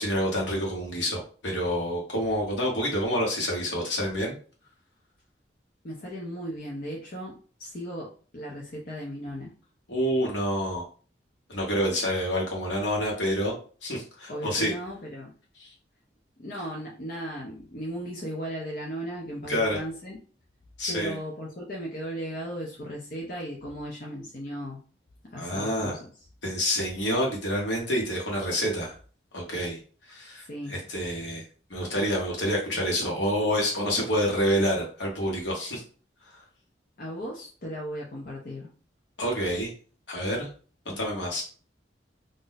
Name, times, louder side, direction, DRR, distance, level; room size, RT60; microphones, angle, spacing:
voice 1, 0.0-4.3 9.9-10.8 11.5-13.5 13.8-14.7 15.6-15.7 19.5-19.8 20.8-21.2 25.4-25.9 26.4-28.9 29.3-29.8 30.1-31.4 31.7-35.8 36.3-36.4 39.2-39.7 40.1-40.5 40.8-41.4, equal, 75° left, -1 dB, 1.1 m, -28 dB
voice 2, 5.8-7.3 7.6-9.5 14.3-15.3 16.4-20.2 20.9-24.8 25.3-26.0 30.4-30.8 37.0-38.7, equal, 50° left, -3 dB, 0.6 m, -36 dB
2.5 x 2.1 x 3.9 m, 0.41 s
head